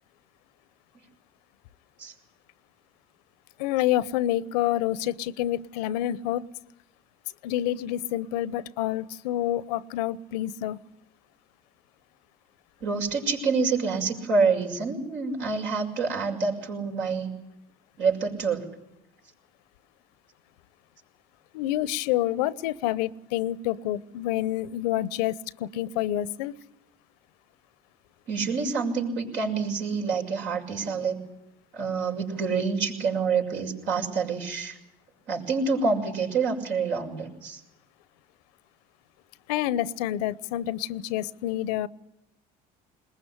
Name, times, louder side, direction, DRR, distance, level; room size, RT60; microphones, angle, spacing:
voice 1, 3.6-6.5 7.4-10.8 21.5-26.5 39.5-41.9, left 13 dB, 85° left, 19 dB, 0.8 m, -28 dB
voice 2, 12.8-17.3 18.0-18.7 28.3-31.2 31.7-34.8 35.3-37.6, right 4 dB, 65° right, 2 dB, 6.5 m, -27 dB
21.5 x 20.0 x 9.9 m, 0.88 s
supercardioid pair, 80°, 20 cm